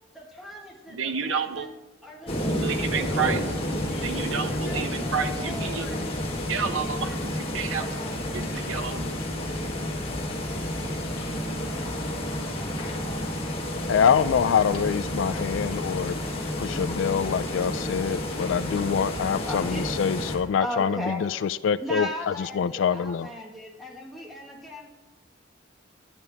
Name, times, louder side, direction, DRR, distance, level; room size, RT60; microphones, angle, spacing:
voice 1, 0.1-1.7 2.0-3.2 3.5-4.1 4.4-6.1 6.6-7.2 7.7-8.5 18.9-19.0 19.4-19.9 20.6-21.2 21.6-24.9, equal, ahead, -2 dB, 1.6 m, -38 dB
voice 2, 0.9-1.7 2.5-3.4 4.0-5.9 6.5-7.8 8.3-9.3, right 6 dB, 75° right, 8 dB, 0.8 m, -30 dB
sound 1, 2.3-20.4, left 1 dB, 30° left, 1.6 m, -30 dB
voice 3, 13.9-16.1 16.6-21.3 21.6-22.1 22.6-23.3, left 7 dB, 70° left, 14 dB, 0.3 m, -25 dB
10.5 x 9.7 x 3.5 m, 1.1 s
head